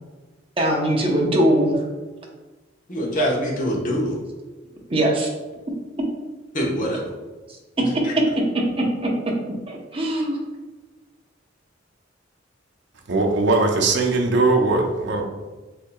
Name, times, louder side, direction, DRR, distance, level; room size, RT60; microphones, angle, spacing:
voice 1, 0.6-1.8 4.9-5.3 7.8-8.0 8.5-9.1 9.7-10.4, right 1 dB, 30° right, 0.8 m, -21 dB
voice 2, 2.9-4.2 6.5-7.1 7.8-8.1 15.2-15.3, equal, 45° left, 1.1 m, -24 dB
voice 3, 13.1-15.2, right 3 dB, 65° right, 0.6 m, -20 dB
6.7 x 2.9 x 2.3 m
head